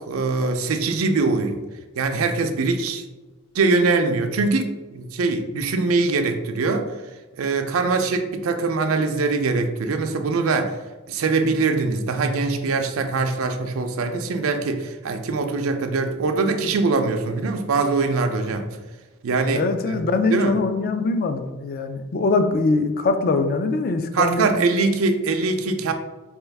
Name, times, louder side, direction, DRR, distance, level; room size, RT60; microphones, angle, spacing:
voice 1, 0.0-1.6 2.0-3.0 3.5-6.9 7.4-10.7 11.1-18.6 19.2-20.0 20.3-20.6 24.1-25.9, right 3 dB, 90° right, 6 dB, 0.5 m, -22 dB
voice 2, 19.5-24.5, left 3 dB, 45° left, 8 dB, 0.3 m, -22 dB
4.4 x 2.3 x 3.3 m, 1.2 s
head